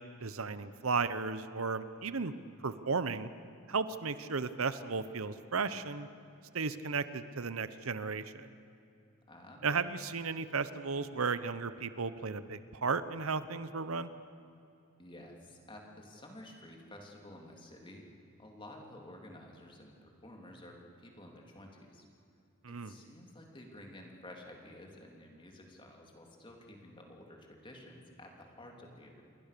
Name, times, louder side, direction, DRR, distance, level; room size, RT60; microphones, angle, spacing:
voice 1, 0.2-2.3 2.6-3.3 3.7-6.1 6.5-8.5 9.6-14.1 22.6-22.9, right 4 dB, 75° right, 13 dB, 0.9 m, -34 dB
voice 2, 9.3-9.7 15.0-18.0 18.4-22.1 22.7-29.2, left 1 dB, 25° left, 1 dB, 3.2 m, -52 dB
28.0 x 22.5 x 6.9 m, 2.7 s
head